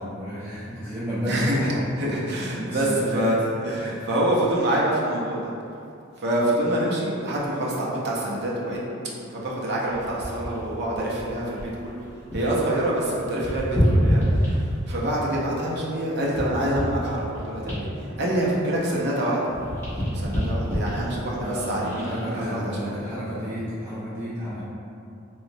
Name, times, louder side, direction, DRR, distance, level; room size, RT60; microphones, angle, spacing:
voice 1, 0.0-1.8 2.6-3.2 3.8-4.1 21.4-24.6, equal, 10° right, -13 dB, 0.6 m, -31 dB
voice 2, 1.3-1.7 2.0-3.4 3.6-5.5 6.2-12.0 12.3-19.5 19.9-22.9, right 1 dB, 55° right, -4 dB, 0.6 m, -26 dB
sound 1, 9.9-12.6 12.9-15.1 15.6-19.2 19.4-22.2 22.8-23.0, equal, 10° left, 1.2 m, -27 dB
3.1 x 2.9 x 2.6 m, 2.6 s
head